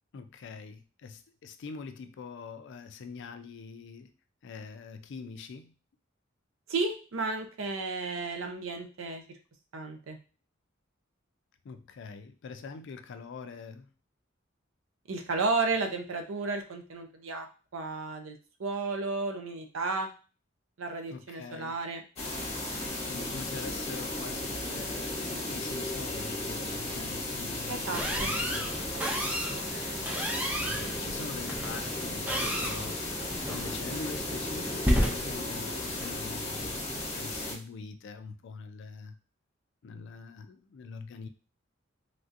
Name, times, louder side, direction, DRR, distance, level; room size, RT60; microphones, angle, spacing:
voice 1, 0.1-4.1 4.4-5.7 11.6-13.9 21.1-21.8 22.8-28.7 30.4-33.0 33.5-39.2 39.8-41.3, left 5 dB, 60° left, 9 dB, 0.4 m, -44 dB
voice 2, 6.7-9.2 9.7-10.2 15.1-17.5 17.7-20.1 20.8-22.0 27.7-28.3 28.9-29.3, right 3 dB, 75° right, 5 dB, 0.6 m, -33 dB
sound 1, 22.2-37.5, left 2 dB, 35° left, 0.8 m, -35 dB
sound 2, 27.9-37.1, equal, 10° right, 0.5 m, -33 dB
3.3 x 2.6 x 2.5 m, 0.35 s
head